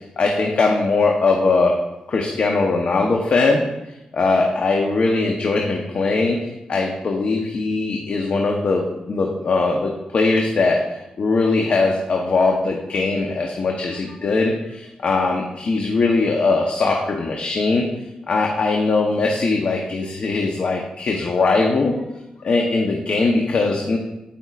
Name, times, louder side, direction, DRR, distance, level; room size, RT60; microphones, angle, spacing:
voice 1, 0.2-1.7 2.1-3.6 4.1-10.8 11.2-17.8 18.3-21.9 22.4-24.0, left 3 dB, 65° left, 1 dB, 0.9 m, -20 dB
12.5 x 5.3 x 2.5 m, 0.94 s
cardioid pair, 60°, 2 cm